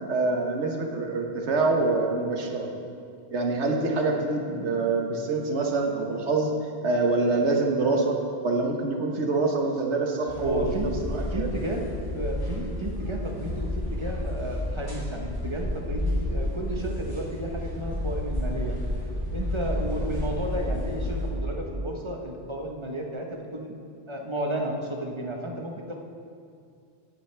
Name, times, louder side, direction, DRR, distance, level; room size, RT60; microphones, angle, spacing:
voice 1, 0.1-2.7 3.3-6.5 6.8-10.7 11.0-11.5, right 3 dB, 80° right, 1 dB, 1.5 m, -25 dB
sound 1, 10.3-21.3, left 1 dB, 20° left, 2.9 m, -31 dB
voice 2, 10.4-11.0 11.3-11.8 12.1-18.8 19.3-23.8 24.1-26.0, right 1 dB, 25° right, 1 dB, 1.2 m, -33 dB
17.5 x 9.0 x 3.4 m, 2.4 s
omnidirectional pair, 1.2 m